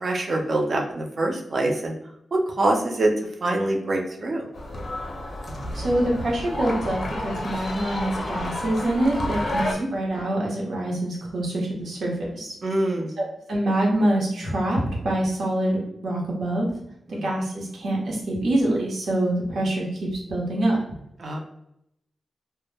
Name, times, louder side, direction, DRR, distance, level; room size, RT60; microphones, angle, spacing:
voice 1, 0.0-2.0 2.3-3.1 3.4-4.4 9.7-9.9 12.6-13.1 17.1-17.2 21.2-21.4, right 2 dB, 45° right, 1 dB, 0.5 m, -24 dB
sound 1, 4.5-9.7, left 1 dB, 50° left, 0.5 m, -30 dB
voice 2, 5.5-12.6 13.2-16.7 17.1-20.8, right 1 dB, 80° right, -3 dB, 0.8 m, -25 dB
2.1 x 2.0 x 3.2 m, 0.79 s
wide cardioid pair, 125°, 0 cm